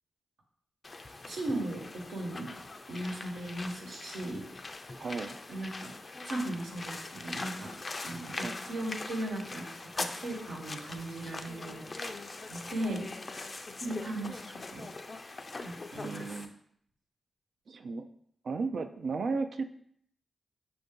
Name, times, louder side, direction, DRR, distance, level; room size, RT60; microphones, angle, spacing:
sound 1, 0.8-16.4, left 3 dB, 40° left, 0.4 m, -42 dB
voice 1, 1.3-2.5 2.9-4.4 5.5-5.9 6.2-7.7 8.0-12.1 12.5-13.0 13.8-14.9 15.6-16.3, right 1 dB, 85° right, -2 dB, 1.2 m, -37 dB
voice 2, 5.0-5.4 8.3-8.6 12.8-13.1 16.0-16.5 17.7-18.0 18.4-19.7, right 4 dB, 70° right, 8 dB, 0.3 m, -35 dB
5.6 x 2.6 x 3.7 m, 0.67 s
cardioid pair, 55°, 0 cm